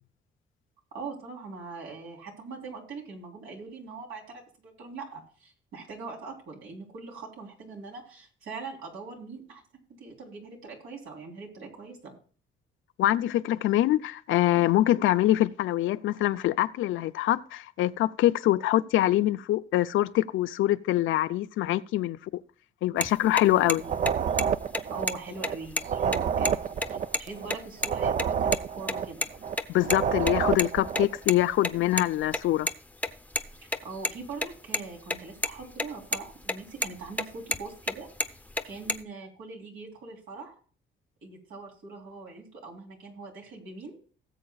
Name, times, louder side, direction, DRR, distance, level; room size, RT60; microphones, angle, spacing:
voice 1, 0.9-9.6 10.0-12.1 23.7-24.1 24.9-26.6 26.9-29.3 33.6-38.1 38.6-40.6 41.2-44.0, right 4 dB, 85° right, 3.5 m, -42 dB
voice 2, 13.0-22.4 22.8-23.8 29.7-32.7, left 14 dB, 80° left, 0.5 m, -24 dB
sound 1, 23.0-23.1 23.4-23.5 23.7-23.8 24.1-24.4 24.7-24.8 25.1-25.2 25.4-26.5 26.8-26.9 27.1-27.2 27.5-27.9 28.2-28.6 28.9-30.0 30.2-32.7 33.0-34.8 35.1-35.2 35.4-35.9 36.1-36.5 36.8-37.9 38.2-38.9, left 1 dB, 5° left, 0.7 m, -29 dB
sound 2, 23.8-25.6 25.8-29.6 29.8-31.2, right 7 dB, 40° right, 0.4 m, -29 dB
18.0 x 7.6 x 2.3 m
cardioid pair, 90°, 20 cm